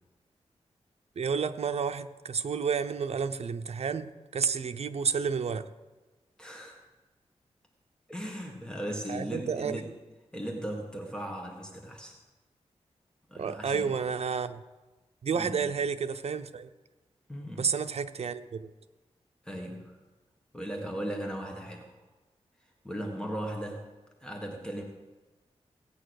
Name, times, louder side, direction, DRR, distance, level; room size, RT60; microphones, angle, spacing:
voice 1, 1.2-5.7 9.1-9.8 13.4-14.6 15.2-16.7 17.6-18.7, right 6 dB, 65° right, 9 dB, 0.7 m, -31 dB
voice 2, 6.4-6.9 8.1-9.9 10.3-12.2 13.3-13.9 15.3-15.7 17.3-17.7 19.4-20.0 20.5-22.0 22.8-23.8 24.2-24.8, equal, 5° left, 1 dB, 1.6 m, -37 dB
17.0 x 8.8 x 6.5 m, 1.2 s
wide cardioid pair, 140°, 11 cm